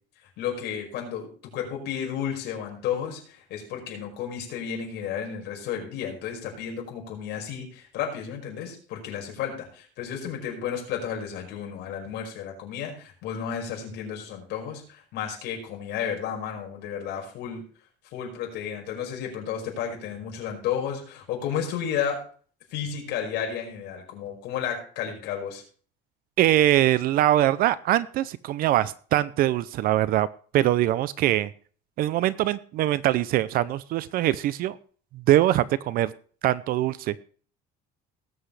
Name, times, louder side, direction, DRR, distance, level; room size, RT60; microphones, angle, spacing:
voice 1, 0.4-17.6 18.1-22.2 22.7-25.6, left 8 dB, 55° left, 1 dB, 5.3 m, -32 dB
voice 2, 26.4-30.3 30.5-31.5 32.0-34.8 35.1-36.1 36.4-37.2, right 13 dB, 45° right, 18 dB, 0.5 m, -22 dB
19.0 x 7.9 x 3.3 m, 0.44 s
cardioid pair, 170°, 20 cm